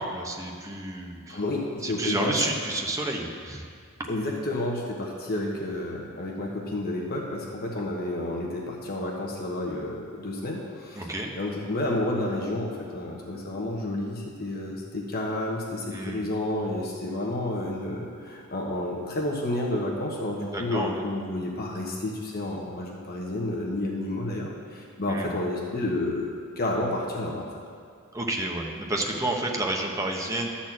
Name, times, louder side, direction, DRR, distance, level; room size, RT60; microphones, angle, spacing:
voice 1, 0.0-1.4 1.8-3.7 4.0-4.1 10.9-11.3 15.9-16.2 20.5-21.0 25.1-25.3 28.1-30.5, right 1 dB, 15° right, 0 dB, 0.9 m, -30 dB
voice 2, 1.3-2.4 4.1-26.3 26.6-27.5, left 1 dB, 45° left, -2 dB, 1.2 m, -30 dB
12.0 x 4.3 x 7.4 m, 2.1 s
head